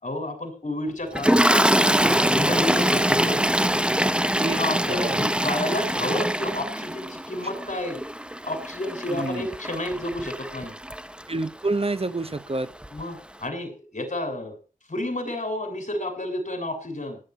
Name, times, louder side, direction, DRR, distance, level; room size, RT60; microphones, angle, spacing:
voice 1, 0.0-3.4 4.6-8.0 8.4-10.7 12.9-14.6 14.9-17.2, left 1 dB, 55° left, 5 dB, 7.1 m, -31 dB
Toilet flush, 1.1-11.4 12.4-12.6 12.8-13.0, equal, 5° right, 0.8 m, -24 dB
voice 2, 4.0-4.6 4.9-5.2 9.1-9.5 11.3-12.7, right 2 dB, 45° right, 14 dB, 1.0 m, -28 dB
18.5 x 11.0 x 4.5 m, 0.37 s
wide cardioid pair, 50°, 14 cm